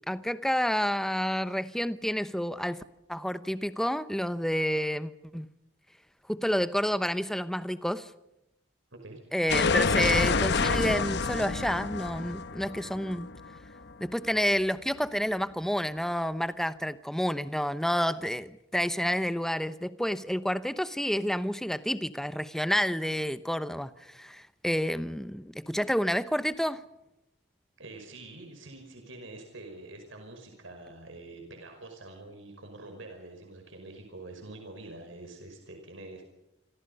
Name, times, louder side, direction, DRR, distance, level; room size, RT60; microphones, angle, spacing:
voice 1, 0.1-2.8 3.1-5.5 6.3-8.1 9.3-13.3 14.0-26.8, equal, ahead, 13 dB, 0.8 m, -29 dB
sound 1, 9.5-14.3, left 4 dB, 60° left, 1.0 m, -28 dB
voice 2, 27.8-36.3, right 2 dB, 75° right, 4 dB, 5.5 m, -46 dB
27.0 x 26.5 x 5.5 m, 0.87 s
head